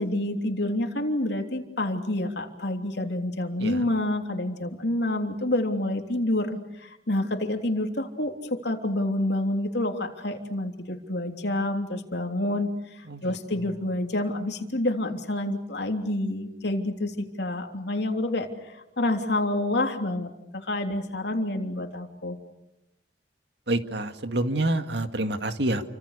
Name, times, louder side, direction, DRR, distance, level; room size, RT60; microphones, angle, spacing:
voice 1, 0.0-22.4, left 1 dB, 70° left, 4 dB, 3.3 m, -28 dB
voice 2, 23.7-25.8, right 1 dB, 70° right, 8 dB, 2.0 m, -27 dB
29.5 x 25.5 x 6.7 m, 0.88 s
head